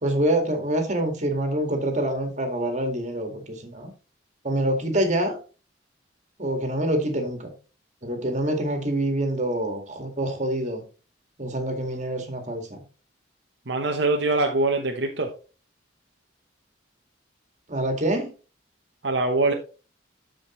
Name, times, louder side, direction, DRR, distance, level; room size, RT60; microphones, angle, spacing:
voice 1, 0.0-3.9 4.4-5.4 6.4-7.5 8.0-10.8 11.4-12.8 17.7-18.3, right 1 dB, 40° right, 5 dB, 1.9 m, -26 dB
voice 2, 13.7-15.3 19.0-19.5, right 2 dB, 65° right, 2 dB, 0.9 m, -23 dB
13.0 x 5.1 x 3.1 m, 0.35 s
head